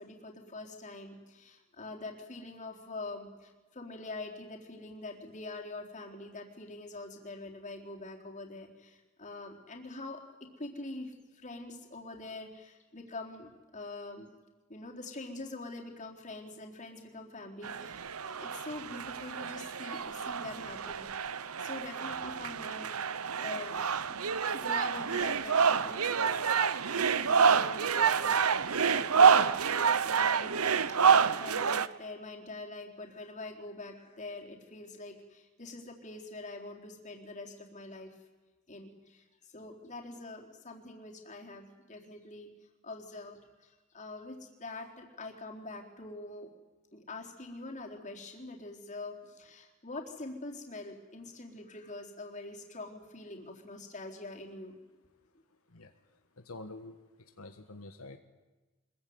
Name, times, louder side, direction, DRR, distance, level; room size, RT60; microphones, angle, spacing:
voice 1, 0.0-10.2 10.6-14.3 14.7-23.1 23.4-23.8 24.1-24.2 24.5-26.7 26.9-30.6 31.0-38.2 38.7-42.5 42.8-46.5 46.9-54.8, left 2 dB, 35° left, 1 dB, 3.9 m, -44 dB
sound 1, 17.6-31.9, right 6 dB, 85° right, 0.9 m, -28 dB
voice 2, 55.7-58.2, left 2 dB, 80° left, 6 dB, 1.5 m, -48 dB
25.5 x 21.5 x 9.6 m, 1.2 s
head